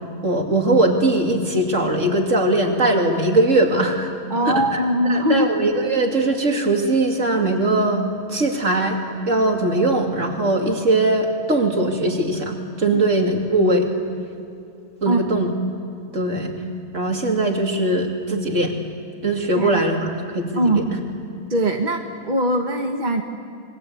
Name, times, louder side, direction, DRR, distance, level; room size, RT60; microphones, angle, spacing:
voice 1, 0.2-4.1 4.5-4.8 5.1-9.0 9.3-13.9 15.0-15.5 16.1-16.5 16.9-18.8 19.2-21.0, right 2 dB, 50° right, 2 dB, 3.0 m, -20 dB
voice 2, 4.3-5.5 12.9-13.0 15.1-15.3 19.5-19.8 20.6-20.9 21.5-23.2, right 1 dB, 30° right, 3 dB, 1.5 m, -21 dB
27.5 x 22.5 x 8.5 m, 2.6 s
omnidirectional pair, 1.6 m